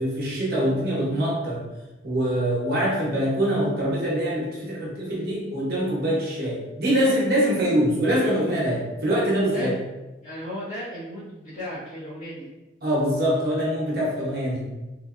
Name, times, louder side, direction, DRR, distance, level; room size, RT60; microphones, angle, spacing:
voice 1, 0.0-1.6 2.0-9.7 12.8-14.7, equal, 55° right, -5 dB, 0.8 m, -24 dB
voice 2, 10.2-12.5, equal, 40° left, -15 dB, 1.4 m, -35 dB
3.5 x 2.6 x 2.4 m, 1.1 s
head